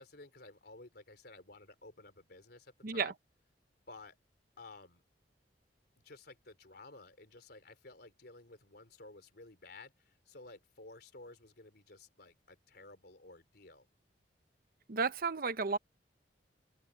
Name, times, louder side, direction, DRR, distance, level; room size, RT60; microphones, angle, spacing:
voice 1, 0.0-3.1 3.9-4.2 4.6-5.0 6.0-13.9, left 2 dB, 65° left, 3.9 m, -54 dB
voice 2, 14.9-15.8, right 5 dB, 55° right, 0.9 m, -32 dB
open air
head